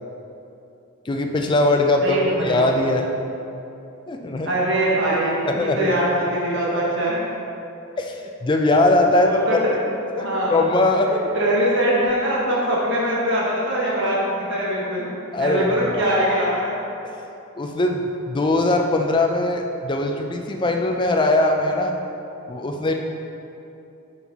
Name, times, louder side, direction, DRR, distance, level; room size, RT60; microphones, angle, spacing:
voice 1, 1.1-2.2 2.4-3.1 4.1-4.5 5.1-5.9 8.0-9.8 10.2-11.3 15.3-16.0 17.0-17.1 17.6-22.0 22.5-22.9, left 2 dB, 20° left, 3 dB, 0.3 m, -21 dB
voice 2, 2.0-2.6 4.4-7.2 9.2-9.6 10.1-10.7 11.3-15.1 15.4-16.7, right 1 dB, 55° right, -5 dB, 1.1 m, -22 dB
5.8 x 4.5 x 4.0 m, 2.8 s
head